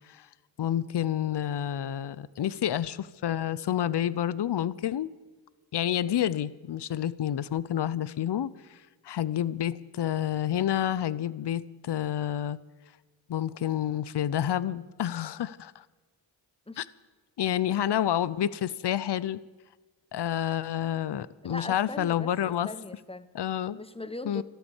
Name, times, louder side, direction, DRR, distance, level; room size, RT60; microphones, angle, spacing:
voice 1, 0.6-5.1 5.7-8.5 9.0-12.6 13.3-15.8 16.8-16.9 17.4-19.4 20.1-22.7 23.3-23.8 24.2-24.4, left 10 dB, 60° left, 18 dB, 0.7 m, -29 dB
voice 2, 21.4-23.3 23.7-24.4, left 1 dB, 10° left, 13 dB, 1.0 m, -40 dB
13.5 x 12.5 x 7.2 m, 1.2 s
cardioid pair, 60°, 47 cm